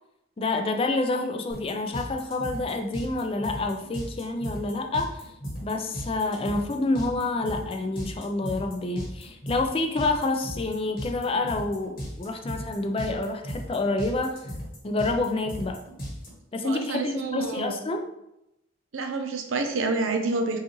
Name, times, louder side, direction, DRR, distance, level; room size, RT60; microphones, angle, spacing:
voice 1, 0.4-5.2 5.6-14.5 14.8-15.8 16.5-18.0, left 2 dB, 25° left, 5 dB, 0.3 m, -28 dB
sound 1, 1.5-16.3, equal, 45° left, 1.0 m, -37 dB
voice 2, 16.6-17.7 18.9-20.6, right 3 dB, 70° right, 4 dB, 0.6 m, -28 dB
5.3 x 2.4 x 3.0 m, 0.88 s
head